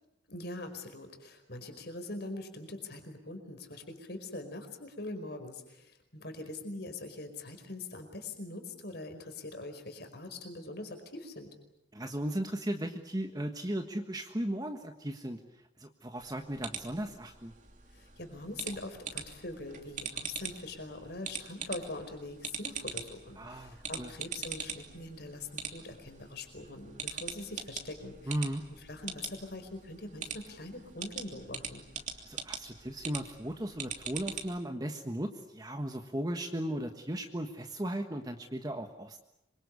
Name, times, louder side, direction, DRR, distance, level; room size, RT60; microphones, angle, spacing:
voice 1, 0.3-11.5 17.9-28.3 28.9-31.8, left 2 dB, 60° left, 7 dB, 4.9 m, -43 dB
voice 2, 11.9-15.4 15.8-17.5 23.4-24.1 28.3-28.6 32.3-39.2, right 1 dB, 20° right, 5 dB, 1.4 m, -36 dB
sound 1, 16.2-34.6, right 6 dB, 40° right, 3.0 m, -43 dB
26.5 x 24.0 x 8.3 m, 0.81 s
head